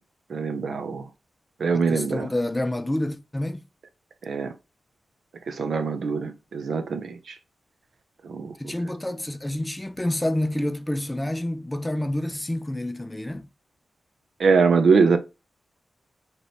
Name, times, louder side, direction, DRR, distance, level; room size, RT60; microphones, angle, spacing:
voice 1, 0.3-1.0 1.6-2.3 4.2-4.5 5.5-7.2 8.3-8.5 14.4-15.2, right 5 dB, 80° right, 0.5 m, -22 dB
voice 2, 1.7-3.6 8.6-13.5, left 1 dB, 15° left, 0.4 m, -28 dB
3.9 x 3.0 x 3.2 m
wide cardioid pair, 120°, 0 cm